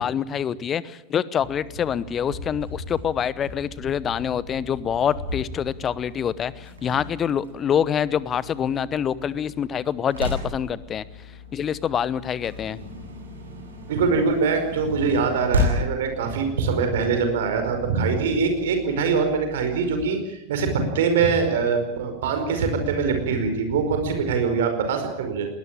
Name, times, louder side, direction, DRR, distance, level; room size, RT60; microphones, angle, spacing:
voice 1, 0.0-11.0 11.5-12.8, left 8 dB, 25° left, 19 dB, 0.9 m, -26 dB
sound 1, 1.3-20.0, left 1 dB, 70° right, 7.9 m, -35 dB
voice 2, 13.9-25.5, right 5 dB, 55° right, 6 dB, 5.0 m, -23 dB
20.5 x 19.5 x 8.9 m, 0.81 s
figure-of-eight pair, 90°, 0 cm